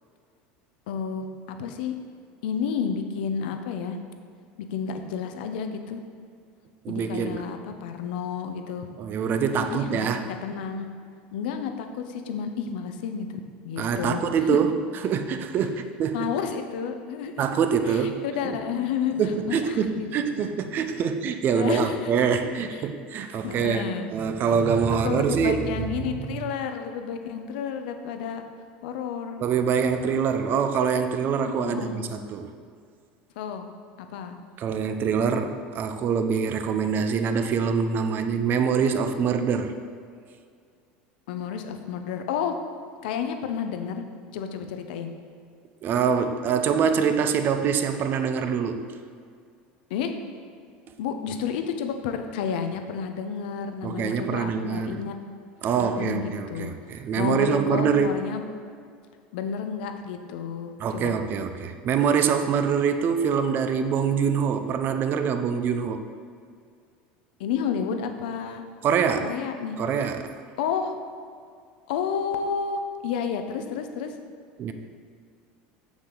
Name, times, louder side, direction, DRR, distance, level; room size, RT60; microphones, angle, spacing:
voice 1, 0.9-1.9 2.4-4.0 4.6-6.0 6.9-8.9 9.6-10.9 11.3-14.2 14.5-14.6 16.1-17.5 17.9-19.2 19.5-20.5 21.5-22.8 23.4-24.1 25.0-28.4 28.8-29.4 31.4-32.1 33.4-33.7 34.0-34.4 41.3-42.6 43.0-44.0 44.3-45.1 49.9-50.1 51.0-55.2 55.8-56.7 57.2-58.4 59.3-61.1 67.4-68.6 69.2-69.8 70.6-70.9 71.9-74.1, left 7 dB, 80° left, 7 dB, 0.7 m, -31 dB
voice 2, 6.8-7.4 9.0-10.3 13.8-16.3 17.4-18.6 19.2-25.7 26.4-26.5 29.4-32.5 34.6-39.7 45.8-48.9 53.8-55.0 55.6-58.2 60.8-66.0 68.8-69.4 69.8-70.4 74.6-74.7, right 6 dB, 45° right, 8 dB, 0.6 m, -25 dB
7.1 x 6.5 x 3.9 m, 2.2 s
supercardioid pair, 120°, 5 cm